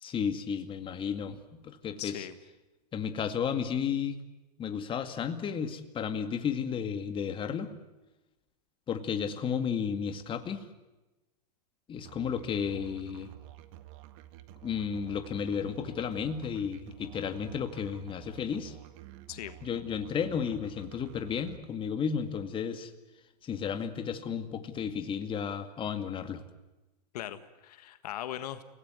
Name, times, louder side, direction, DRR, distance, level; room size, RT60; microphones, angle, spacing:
voice 1, 0.0-2.3 2.9-4.2 4.6-7.7 8.9-10.6 11.9-13.3 14.6-18.7 19.6-22.9 23.4-26.4, left 7 dB, 25° left, 8 dB, 2.2 m, -33 dB
voice 2, 2.0-2.3 19.3-19.6 27.1-28.6, left 12 dB, 70° left, 11 dB, 1.6 m, -39 dB
Musical instrument, 12.0-21.6, right 15 dB, 50° right, 1.9 m, -50 dB
29.5 x 17.5 x 9.7 m, 1.1 s
hypercardioid pair, 125°, 21 cm